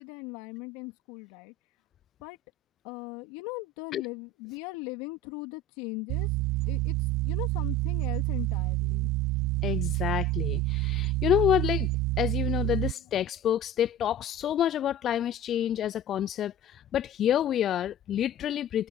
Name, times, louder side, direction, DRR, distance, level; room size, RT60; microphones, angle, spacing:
voice 1, 0.0-1.5 2.2-2.4 2.8-6.3 6.7-9.3, left 26 dB, 65° left, 3.2 m, -39 dB
sound 1, 6.1-12.9, right 21 dB, 55° right, 0.9 m, -28 dB
voice 2, 9.6-11.9 12.2-18.9, left 11 dB, 40° left, 0.3 m, -28 dB
hypercardioid pair, 100°, 0 cm